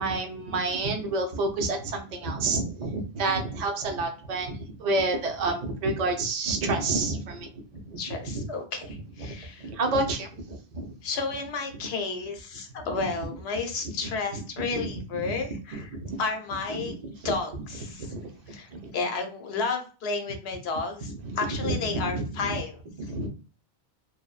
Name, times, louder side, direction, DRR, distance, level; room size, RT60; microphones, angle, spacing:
voice 1, 0.0-8.5 9.2-9.3 9.6-10.9 14.3-15.3 15.7-16.2 16.7-17.6 18.1-18.9 21.1-22.6 23.0-23.3, right 2 dB, 50° right, 4 dB, 0.5 m, -30 dB
voice 2, 8.0-9.7 11.0-15.9 16.2-17.0 17.2-18.1 18.5-18.7 18.9-22.8, left 4 dB, 80° left, 5 dB, 0.9 m, -32 dB
2.9 x 2.1 x 2.3 m, 0.36 s
omnidirectional pair, 1.1 m